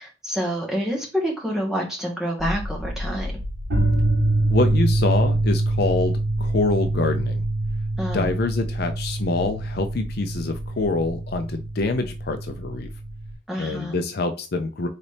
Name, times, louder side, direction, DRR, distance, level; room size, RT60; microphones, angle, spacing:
voice 1, 0.0-3.3 8.0-8.3 13.5-14.0, equal, ahead, -2 dB, 1.3 m, -27 dB
sound 1, 2.4-13.3, right 2 dB, 55° right, 2.6 m, -25 dB
voice 2, 4.5-7.4 8.1-12.9 13.6-14.9, left 3 dB, 50° left, 6 dB, 0.4 m, -25 dB
4.1 x 4.0 x 3.2 m, 0.33 s
head